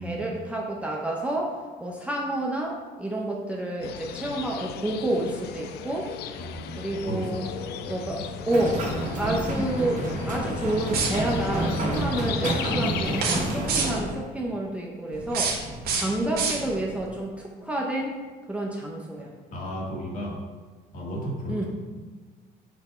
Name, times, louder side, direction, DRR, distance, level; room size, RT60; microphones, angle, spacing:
voice 1, 0.0-6.1 6.8-7.5 7.8-8.2 8.5-8.8 9.2-15.6 15.9-18.1 18.5-19.3 21.5-21.7, right 1 dB, 5° right, -2 dB, 0.8 m, -29 dB
sound 1, 3.8-13.2, left 9 dB, 75° left, 0.4 m, -37 dB
voice 2, 6.4-8.3 15.8-16.1 19.5-20.3 20.9-21.7, equal, 50° left, -3 dB, 2.0 m, -35 dB
sound 2, 8.5-14.0, right 1 dB, 50° right, 1.5 m, -29 dB
sound 3, 10.9-11.5 13.1-14.2 15.1-17.0, right 4 dB, 65° right, 1.4 m, -29 dB
6.1 x 3.4 x 5.6 m, 1.4 s
cardioid pair, 110°, 17 cm